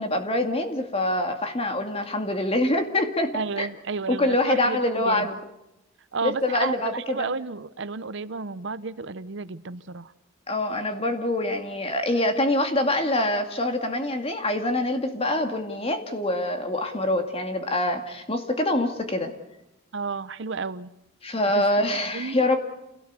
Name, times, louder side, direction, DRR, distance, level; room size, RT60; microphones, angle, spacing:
voice 1, 0.0-3.7 4.1-5.4 6.2-7.3 10.5-19.3 21.2-22.6, left 1 dB, 30° left, 6 dB, 2.3 m, -25 dB
voice 2, 3.3-5.3 6.1-10.1 19.9-20.9 21.5-21.7 22.1-22.4, right 4 dB, 60° right, 15 dB, 0.8 m, -32 dB
28.0 x 17.0 x 8.2 m, 0.93 s
head